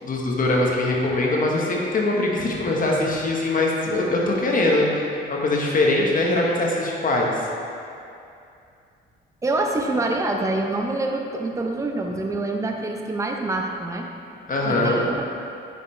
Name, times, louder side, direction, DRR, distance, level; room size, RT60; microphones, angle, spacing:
voice 1, 0.0-7.5 14.5-15.0, left 2 dB, 45° left, -2 dB, 1.1 m, -22 dB
voice 2, 9.4-14.1 14.6-15.2, right 2 dB, 15° right, 2 dB, 0.6 m, -26 dB
9.3 x 5.4 x 3.2 m, 2.6 s
cardioid pair, 90°, 20 cm